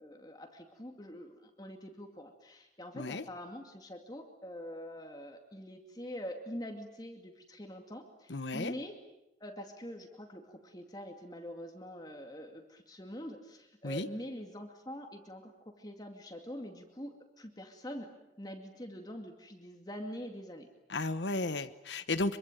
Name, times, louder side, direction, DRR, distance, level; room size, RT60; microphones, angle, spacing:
voice 1, 0.0-9.0 9.4-18.1 18.4-20.7, equal, 20° left, 3 dB, 2.3 m, -44 dB
voice 2, 8.3-8.7 13.8-14.1 20.9-22.4, left 2 dB, 75° left, 11 dB, 1.1 m, -34 dB
25.0 x 24.0 x 9.2 m, 0.93 s
head